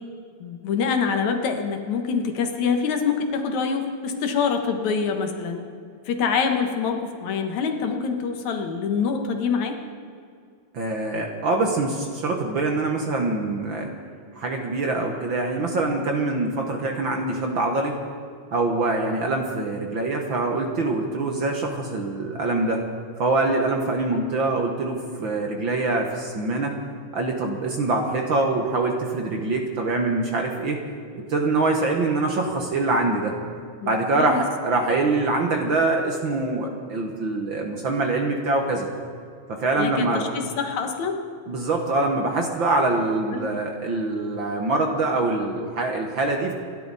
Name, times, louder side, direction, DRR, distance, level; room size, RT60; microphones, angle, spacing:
voice 1, 0.4-5.6 6.1-9.8 33.8-34.4 39.8-41.2 43.3-43.5, left 5 dB, 75° left, 5 dB, 2.7 m, -25 dB
voice 2, 10.7-13.9 14.4-18.0 18.5-22.9 23.2-26.7 27.1-30.8 31.3-33.4 33.8-38.9 39.5-40.3 41.5-46.5, right 2 dB, 50° right, 2 dB, 1.7 m, -24 dB
27.5 x 12.0 x 4.1 m, 2.3 s
omnidirectional pair, 3.4 m